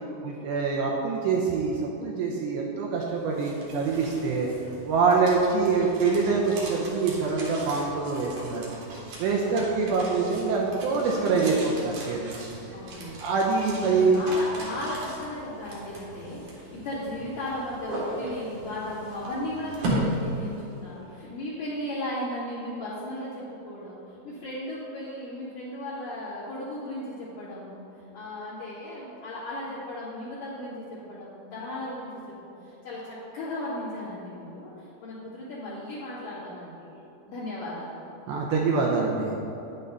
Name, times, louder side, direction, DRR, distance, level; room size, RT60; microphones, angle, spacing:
voice 1, 0.2-4.5 4.9-8.7 9.2-12.5 13.2-14.2 38.3-39.3, right 4 dB, 85° right, -1 dB, 2.6 m, -25 dB
sound 1, 3.1-21.1, right 1 dB, 60° right, 2.2 m, -37 dB
voice 2, 9.5-9.9 12.7-13.4 13.8-24.0 24.2-27.8 28.1-37.0 37.3-38.0, left 1 dB, 50° left, -12 dB, 2.7 m, -36 dB
10.0 x 8.8 x 4.0 m, 3.0 s
omnidirectional pair, 5.9 m